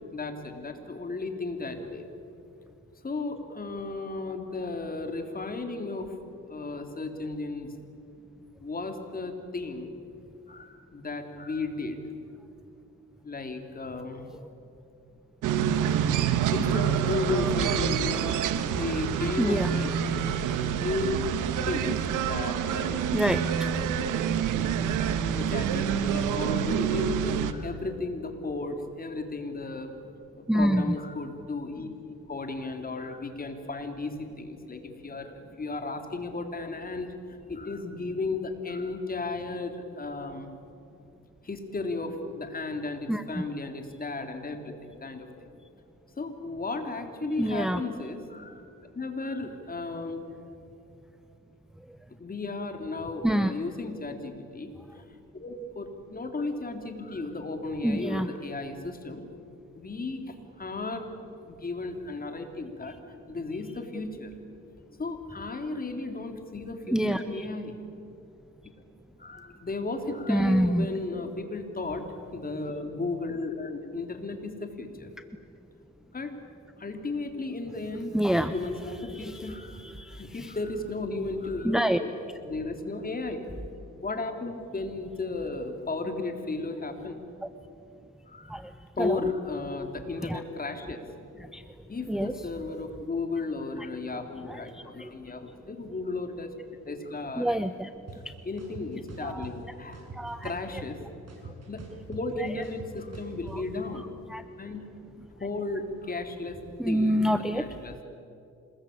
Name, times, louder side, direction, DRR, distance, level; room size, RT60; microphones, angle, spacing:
voice 1, 0.1-2.1 3.0-6.2 6.5-7.8 8.6-9.9 10.5-12.2 13.2-14.3 16.5-18.4 18.7-20.2 20.7-21.3 21.7-23.1 25.3-29.9 30.5-31.9 32.3-40.5 41.4-45.5 46.2-48.7 48.9-50.2 52.2-55.0 55.3-59.2 59.7-61.1 61.5-63.0 63.3-64.4 65.0-68.0 69.2-72.1 72.3-75.1 76.1-76.3 76.8-79.8 80.1-82.1 82.4-83.5 84.0-87.2 88.3-88.6 89.0-91.0 91.9-96.5 96.9-97.6 98.1-100.1 100.4-101.0 101.4-104.1 104.6-104.9 105.4-106.6 106.9-107.2 107.5-108.0, left 3 dB, 30° left, 5 dB, 3.5 m, -34 dB
sound 1, 15.4-27.5, right 8 dB, 85° right, 1.5 m, -27 dB
voice 2, 19.4-19.7 20.4-20.6 23.1-23.7 30.5-31.0 43.1-43.2 47.4-47.8 53.2-53.5 57.8-58.3 66.9-67.2 70.3-70.9 78.1-78.5 79.2-79.3 79.8-80.2 81.6-82.0 88.5-88.7 89.0-89.2 90.2-90.4 91.5-91.6 92.1-92.3 95.0-95.1 97.4-97.9 100.2-100.5 104.3-104.4 106.8-107.6, equal, ahead, 10 dB, 0.8 m, -26 dB
sound 2, 98.1-98.2 98.6-99.5 99.9-101.0 101.3-103.6, right 4 dB, 55° right, 7.4 m, -43 dB
27.0 x 20.5 x 8.7 m, 2.7 s
cardioid pair, 90°, 30 cm